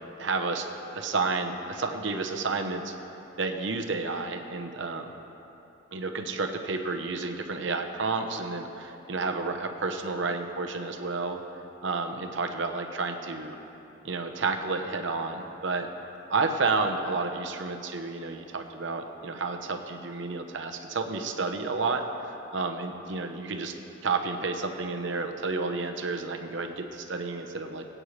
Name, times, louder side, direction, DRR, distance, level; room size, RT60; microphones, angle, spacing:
voice 1, 0.2-2.9 3.4-5.1 5.9-11.4 11.8-13.6 14.0-15.9 16.3-23.7 24.0-27.8, right 3 dB, 65° right, 4 dB, 0.9 m, -31 dB
22.0 x 8.7 x 3.3 m, 3.0 s
head